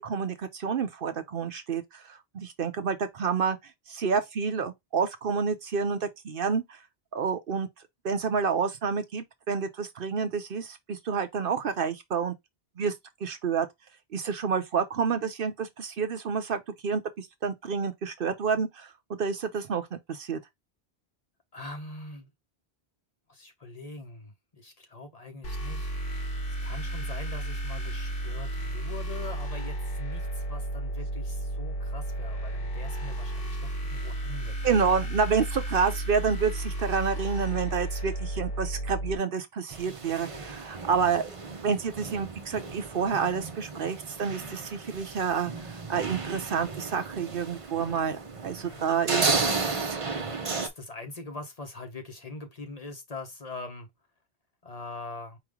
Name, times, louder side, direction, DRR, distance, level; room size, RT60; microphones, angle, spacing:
voice 1, 0.0-3.6 3.9-6.8 7.1-7.7 8.0-12.3 12.8-12.9 13.2-13.7 14.1-20.4 34.6-50.3, right 6 dB, 60° right, 0.9 m, -29 dB
voice 2, 21.5-22.3 23.3-25.9 26.6-34.8 48.6-48.9 50.1-53.9 54.6-55.4, left 3 dB, 40° left, 1.0 m, -43 dB
sound 1, 25.4-39.1, right 1 dB, 60° left, 1.3 m, -33 dB
sound 2, 39.7-50.7, right 4 dB, 35° right, 0.8 m, -33 dB
4.9 x 3.1 x 3.5 m
omnidirectional pair, 1.1 m